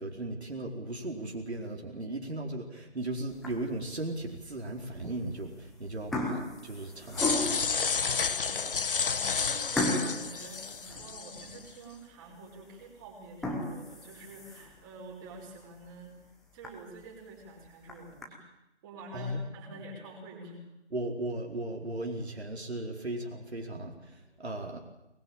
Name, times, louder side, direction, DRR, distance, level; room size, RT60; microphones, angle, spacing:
voice 1, 0.0-7.6 19.1-19.4 19.7-19.8 20.9-24.8, right 1 dB, 70° right, 2 dB, 4.8 m, -37 dB
sound 1, 3.3-3.8 4.4-4.5 5.4-5.6 5.9-7.8 8.4-8.5 8.8-9.0 9.8-11.5 11.9-12.0 12.5-12.6 13.2-14.8 15.3-15.4 15.8-15.9 16.2-16.3 16.6-16.7 17.6-18.2, left 1 dB, ahead, 0.9 m, -34 dB
sound 2, 7.2-11.6, left 5 dB, 55° left, 1.2 m, -31 dB
voice 2, 8.0-16.2 16.5-18.4 18.8-20.6, right 2 dB, 20° right, 0 dB, 5.4 m, -48 dB
22.0 x 21.0 x 9.0 m, 0.89 s
figure-of-eight pair, 155°, 33 cm